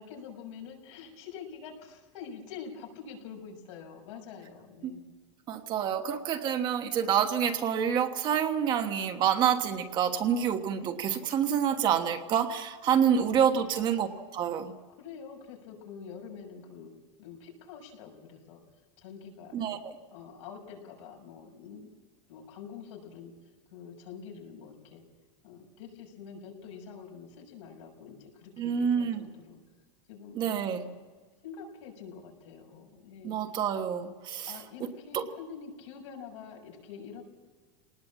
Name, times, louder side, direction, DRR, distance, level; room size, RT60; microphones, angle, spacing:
voice 1, 0.0-5.1 13.2-13.7 15.0-16.9 17.2-18.6 19.0-19.7 20.1-21.9 22.3-25.0 25.4-29.6 30.1-30.9 31.4-33.6 34.5-37.2, left 6 dB, 80° left, 1 dB, 6.4 m, -46 dB
voice 2, 5.5-14.1 14.3-14.7 19.5-19.8 28.6-29.2 30.3-30.8 33.2-34.5 35.1-35.2, right 8 dB, 30° right, 6 dB, 1.3 m, -27 dB
22.0 x 19.5 x 7.5 m, 1.4 s
supercardioid pair, 170°, 15 cm